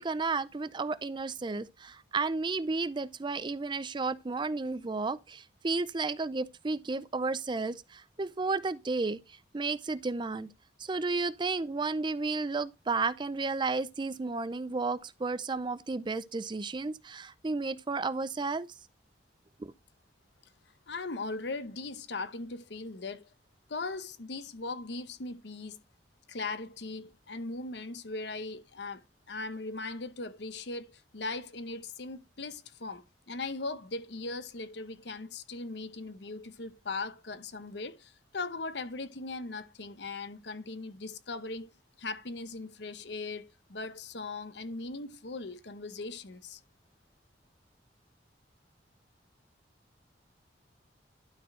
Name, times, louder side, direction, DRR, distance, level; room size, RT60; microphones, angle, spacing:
voice 1, 0.0-9.2 9.5-10.5 10.8-18.7 19.6-19.7, right 3 dB, 25° right, 0.4 m, -32 dB
voice 2, 20.9-23.3 23.7-25.8 26.3-29.0 29.3-41.7 42.0-46.6, left 3 dB, 70° left, 0.9 m, -39 dB
12.0 x 4.4 x 4.3 m
head